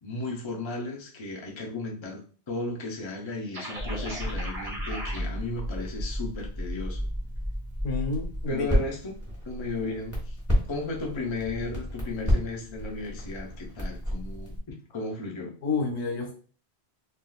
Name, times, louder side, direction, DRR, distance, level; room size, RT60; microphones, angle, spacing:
voice 1, 0.0-7.1 8.5-9.1 9.4-10.4 10.7-15.5, left 2 dB, 30° left, 0 dB, 0.6 m, -35 dB
sound 1, 3.5-5.2, right 1 dB, 35° right, 1.0 m, -37 dB
Crackle, 3.7-14.6, equal, 15° left, 1.1 m, -32 dB
voice 2, 7.8-8.7 15.6-16.3, left 4 dB, 90° left, 1 dB, 1.2 m, -29 dB
3.5 x 2.6 x 2.3 m, 0.39 s
omnidirectional pair, 1.1 m